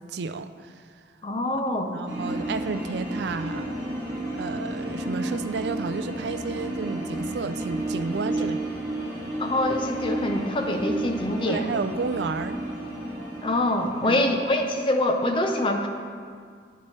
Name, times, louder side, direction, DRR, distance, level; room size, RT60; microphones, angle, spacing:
voice 1, 0.1-0.5 1.8-3.8 4.4-8.6 11.5-12.6 14.0-14.2, right 4 dB, 70° right, 11 dB, 0.4 m, -31 dB
voice 2, 1.2-1.9 8.4-8.5 9.4-11.7 13.4-15.9, left 1 dB, 30° left, 4 dB, 0.6 m, -25 dB
sound 1, 2.1-14.6, right 1 dB, 15° right, 1.9 m, -32 dB
10.0 x 7.2 x 3.2 m, 2.1 s
head